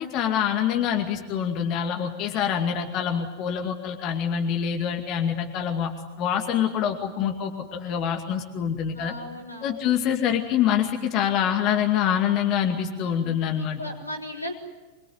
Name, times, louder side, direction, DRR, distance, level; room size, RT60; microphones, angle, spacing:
voice 1, 0.0-5.9 6.2-9.1 9.6-13.8, left 9 dB, 40° left, 4 dB, 2.3 m, -25 dB
voice 2, 8.9-9.9 12.9-14.5, left 1 dB, 85° left, 0 dB, 4.6 m, -37 dB
26.5 x 22.5 x 9.6 m, 1.1 s
figure-of-eight pair, 90°, 0 cm